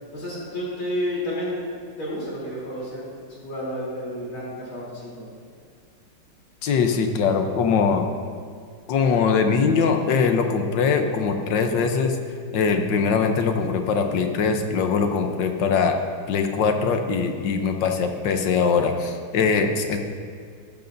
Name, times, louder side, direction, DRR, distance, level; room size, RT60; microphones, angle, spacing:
voice 1, 0.1-5.3, equal, 90° left, -6 dB, 4.2 m, -31 dB
voice 2, 6.6-8.1 8.9-12.2 12.5-16.0 16.3-20.0, left 5 dB, 70° left, 5 dB, 1.4 m, -22 dB
14.5 x 12.5 x 2.6 m, 2.1 s
omnidirectional pair, 2.2 m